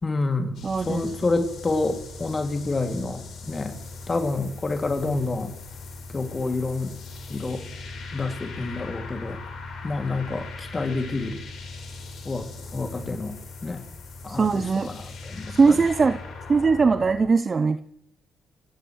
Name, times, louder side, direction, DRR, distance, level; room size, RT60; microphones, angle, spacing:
voice 1, 0.0-3.2 3.5-3.8 4.1-5.5 6.1-6.9 7.3-7.6 8.1-9.4 9.8-11.4 12.2-12.4 12.7-13.4 13.6-13.8 14.2-15.8, left 3 dB, 35° left, 5 dB, 2.4 m, -28 dB
sound 1, 0.5-17.3, left 3 dB, 65° left, 4.0 m, -39 dB
voice 2, 0.6-1.0 1.3-1.4 14.3-14.9 15.5-16.2 16.5-17.8, right 4 dB, 40° right, 11 dB, 0.6 m, -20 dB
26.5 x 17.0 x 3.2 m, 0.74 s
hypercardioid pair, 45°, 0 cm